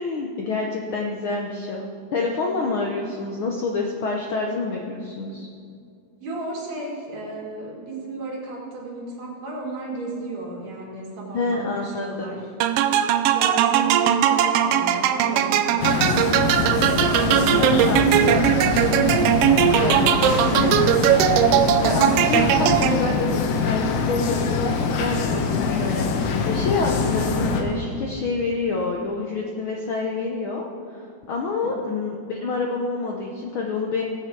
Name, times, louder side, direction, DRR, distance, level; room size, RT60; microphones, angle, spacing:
voice 1, 0.0-5.5 11.3-12.3 17.5-18.0 18.3-18.4 19.6-20.9 21.8-34.0, left 3 dB, 70° left, 0 dB, 1.2 m, -27 dB
voice 2, 6.2-12.4 13.3-18.8 20.2-20.3 31.6-31.8, right 1 dB, 65° right, -4 dB, 3.4 m, -34 dB
sound 1, 12.6-23.3, right 10 dB, 85° right, 1.3 m, -19 dB
sound 2, 15.8-27.6, left 5 dB, 90° left, 2.4 m, -24 dB
17.0 x 7.8 x 4.6 m, 2.3 s
omnidirectional pair, 3.3 m